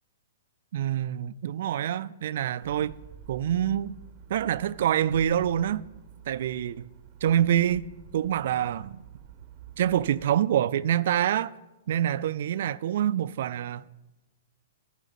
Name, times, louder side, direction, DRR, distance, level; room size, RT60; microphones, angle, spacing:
voice 1, 0.7-2.9 3.3-4.0 4.3-5.8 6.3-6.9 7.2-9.0 9.8-11.5 11.9-13.9, right 10 dB, 65° right, 0.3 m, -26 dB
sound 1, 2.6-10.3, right 8 dB, 40° right, 0.7 m, -49 dB
9.9 x 5.1 x 7.1 m
hypercardioid pair, 140°, 0 cm